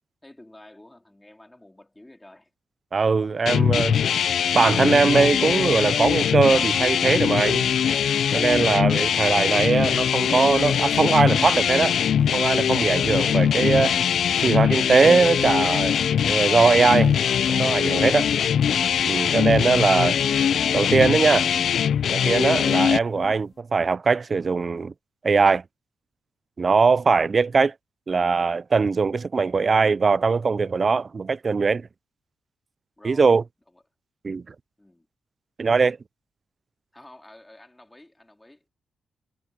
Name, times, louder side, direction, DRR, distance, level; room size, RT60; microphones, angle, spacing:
voice 1, 0.2-2.5 13.0-13.4 22.1-22.5 33.0-33.3 33.7-33.8 34.8-35.1 36.9-38.7, left 1 dB, 10° left, 3.3 m, -50 dB
voice 2, 2.9-4.0 4.5-7.7 8.3-12.0 12.3-14.0 14.4-16.0 16.3-17.1 17.5-18.3 19.0-20.2 20.7-21.5 22.1-24.9 25.2-25.6 26.6-27.7 28.1-31.9 33.0-33.4 34.2-34.5 35.6-36.0, right 4 dB, 30° right, 0.3 m, -21 dB
sound 1, 3.5-23.0, left 8 dB, 65° left, 0.4 m, -22 dB
sound 2, 9.9-12.2 12.5-14.6 14.9-16.4 17.3-22.9 23.2-23.3, left 4 dB, 30° left, 2.2 m, -35 dB
wide cardioid pair, 165°, 0 cm